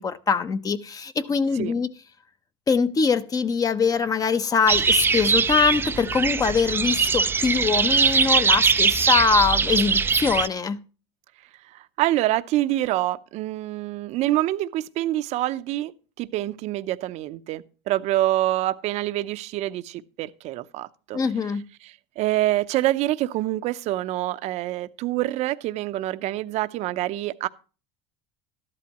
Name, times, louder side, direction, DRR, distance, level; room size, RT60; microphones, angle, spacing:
voice 1, 0.0-1.9 2.7-10.8 21.1-21.6, left 5 dB, 25° left, 0.8 m, -23 dB
sound 1, 4.7-10.5, right 5 dB, 15° right, 0.4 m, -21 dB
voice 2, 11.7-21.2 21.8-27.5, right 15 dB, 55° right, 0.7 m, -26 dB
13.0 x 11.5 x 3.0 m
supercardioid pair, 105°, 14 cm